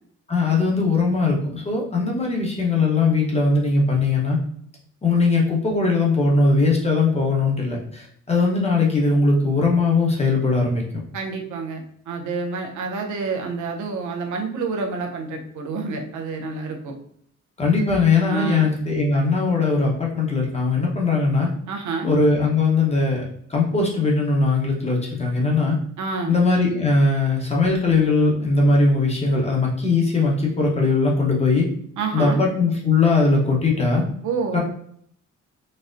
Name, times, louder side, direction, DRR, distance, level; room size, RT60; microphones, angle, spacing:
voice 1, 0.3-4.4 5.0-10.8 17.6-21.5 22.0-23.2 23.5-25.8 26.3-31.7 32.1-34.0 34.5-34.6, left 3 dB, 20° left, -2 dB, 0.9 m, -20 dB
voice 2, 11.1-17.0 18.3-18.7 21.7-22.1 26.0-26.4 32.0-32.4 34.2-34.6, right 4 dB, 90° right, 2 dB, 0.7 m, -28 dB
4.1 x 2.1 x 2.5 m, 0.64 s
cardioid pair, 110°, 29 cm